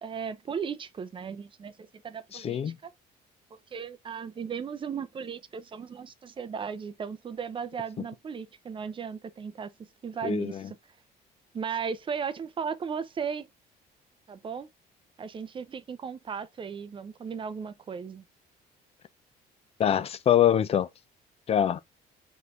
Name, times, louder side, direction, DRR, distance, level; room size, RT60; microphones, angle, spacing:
voice 1, 0.0-2.9 3.5-9.7 10.0-10.8 11.5-13.5 14.3-14.7 15.2-18.2, right 6 dB, 30° right, 0.5 m, -36 dB
voice 2, 2.3-2.8 10.2-10.6 19.8-20.9 21.5-21.8, left 10 dB, 35° left, 0.4 m, -24 dB
4.9 x 3.1 x 2.5 m
cardioid pair, 110°, 17 cm